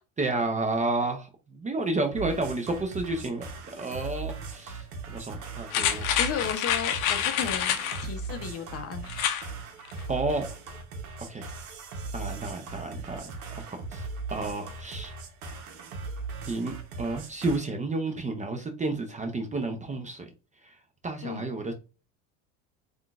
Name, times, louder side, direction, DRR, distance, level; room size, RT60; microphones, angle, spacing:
voice 1, 0.2-1.3 1.5-3.4 3.8-6.1 10.1-10.5 11.2-11.4 12.1-13.3 13.5-14.0 14.3-15.1 16.5-20.2 21.0-21.7, right 2 dB, 20° right, 0.5 m, -31 dB
sound 1, 2.1-17.6, right 4 dB, 85° right, 0.8 m, -39 dB
sound 2, 5.7-8.1 9.1-9.5 9.9-10.0, left 9 dB, 85° left, 0.6 m, -27 dB
voice 2, 6.2-9.1 21.2-21.4, left 7 dB, 35° left, 0.6 m, -34 dB
3.6 x 2.4 x 2.3 m
hypercardioid pair, 85°, 42 cm